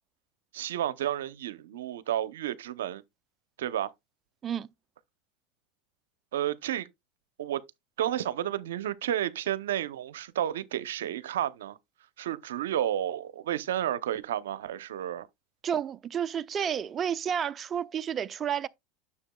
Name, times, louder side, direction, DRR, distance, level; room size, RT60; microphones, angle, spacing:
voice 1, 0.5-3.0 3.6-3.9 6.3-6.9 7.4-7.6 8.0-11.8 12.2-15.3, right 11 dB, 85° right, 0.6 m, -31 dB
voice 2, 15.6-18.7, right 8 dB, 30° right, 0.5 m, -31 dB
9.8 x 6.7 x 2.3 m
hypercardioid pair, 105°, 0 cm